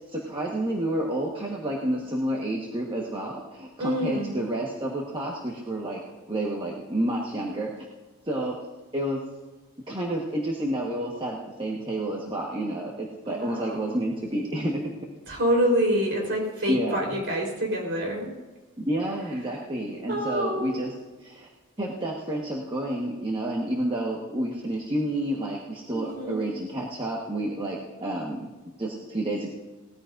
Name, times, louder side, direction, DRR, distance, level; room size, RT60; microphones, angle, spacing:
voice 1, 0.1-6.0 6.3-7.9 8.3-8.5 8.9-9.2 9.9-15.0 16.7-17.2 18.8-20.9 21.2-21.5 21.8-28.5 28.8-29.5, right 1 dB, 25° right, -3 dB, 1.4 m, -30 dB
voice 2, 3.8-4.3 13.3-14.0 15.3-18.3 20.1-20.8 25.9-26.5, equal, 55° right, -1 dB, 4.0 m, -27 dB
19.5 x 14.5 x 2.6 m, 1.2 s
head